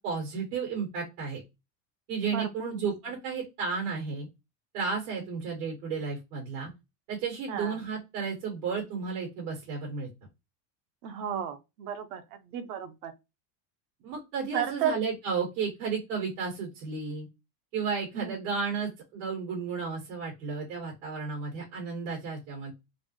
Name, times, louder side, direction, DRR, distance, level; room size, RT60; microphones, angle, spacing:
voice 1, 0.0-1.4 2.1-4.3 4.7-6.7 7.1-10.1 14.0-17.3 17.7-22.7, right 5 dB, 85° right, 2.2 m, -33 dB
voice 2, 2.3-2.8 7.5-7.8 11.0-13.1 14.5-14.9 18.1-18.4, right 8 dB, 55° right, 0.7 m, -33 dB
4.1 x 2.1 x 3.0 m
cardioid pair, 165°, 45 cm